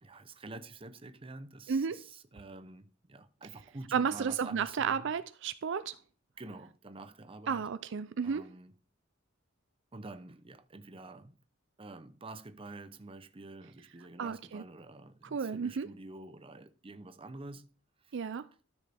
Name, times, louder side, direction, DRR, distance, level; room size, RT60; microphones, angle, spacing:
voice 1, 0.0-5.1 6.4-7.7 8.2-8.7 9.9-11.4 11.8-17.7 18.0-18.2, right 2 dB, 25° right, 0.7 m, -48 dB
voice 2, 3.9-6.0 7.5-8.4 14.2-14.6 15.3-15.9 18.1-18.4, right 6 dB, 60° right, 0.4 m, -32 dB
13.0 x 6.3 x 3.5 m
head